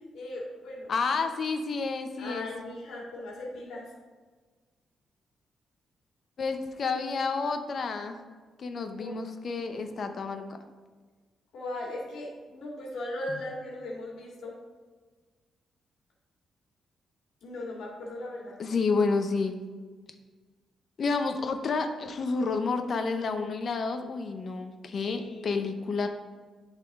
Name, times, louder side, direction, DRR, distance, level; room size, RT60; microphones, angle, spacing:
voice 1, 0.0-0.9 2.2-3.8 9.0-9.1 11.5-14.5 17.4-18.6 25.1-25.6, left 1 dB, 80° left, -3 dB, 2.0 m, -38 dB
voice 2, 0.9-2.5 6.4-8.2 8.6-10.5 13.3-13.4 18.6-19.6 21.0-26.1, left 4 dB, 45° left, 6 dB, 0.7 m, -30 dB
11.0 x 4.1 x 3.6 m, 1.4 s
cardioid pair, 140°, 0 cm